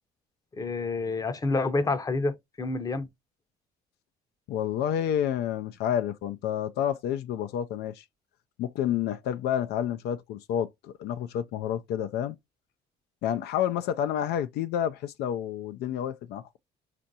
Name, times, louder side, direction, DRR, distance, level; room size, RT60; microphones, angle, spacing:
voice 1, 0.6-3.1, left 3 dB, 20° left, 0.6 m, -28 dB
voice 2, 4.5-8.0 8.6-12.4 13.2-16.6, left 10 dB, 75° left, 0.4 m, -29 dB
4.4 x 2.5 x 2.7 m
cardioid pair, 110°, 17 cm